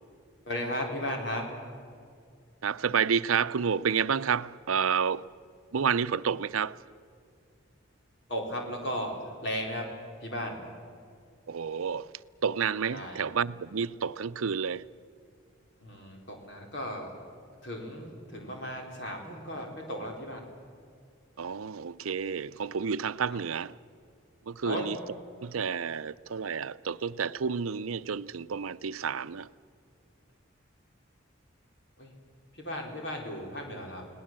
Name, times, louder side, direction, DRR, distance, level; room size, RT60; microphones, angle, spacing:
voice 1, 0.5-1.5 8.3-9.9 10.2-10.6 12.9-13.2 15.8-17.1 17.6-20.5 23.3-23.4 24.6-24.9 32.0-32.1 32.5-34.0, equal, 55° left, 4.3 m, -35 dB
voice 2, 2.6-5.3 5.7-6.8 11.5-12.1 12.4-14.9 21.4-23.8 24.5-25.0 25.4-29.5, right 6 dB, 90° right, 0.6 m, -30 dB
29.5 x 19.0 x 7.6 m
head